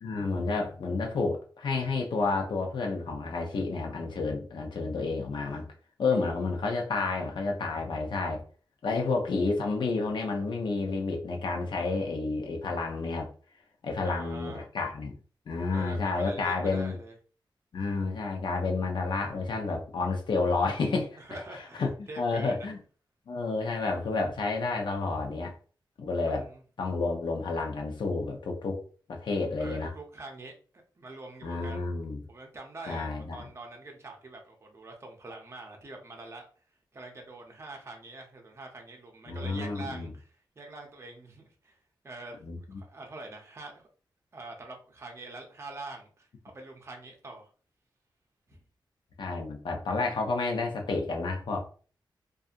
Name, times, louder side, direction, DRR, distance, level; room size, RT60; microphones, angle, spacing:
voice 1, 0.0-5.6 6.0-8.4 8.8-13.3 13.8-15.2 15.5-17.0 17.7-21.4 21.8-22.8 23.3-25.5 26.0-26.4 26.8-28.8 29.1-29.9 31.4-32.2 32.9-33.4 39.3-40.1 42.4-42.6 49.2-51.6, left 3 dB, 65° left, 0.6 m, -30 dB
voice 2, 6.1-6.8 14.0-14.7 15.7-17.1 21.2-22.7 26.3-26.6 29.6-31.9 32.3-36.5 36.9-41.8 42.0-43.9 44.3-47.5 48.5-48.6, right 2 dB, 30° right, 0.6 m, -45 dB
2.7 x 2.4 x 2.4 m
wide cardioid pair, 125°, 9 cm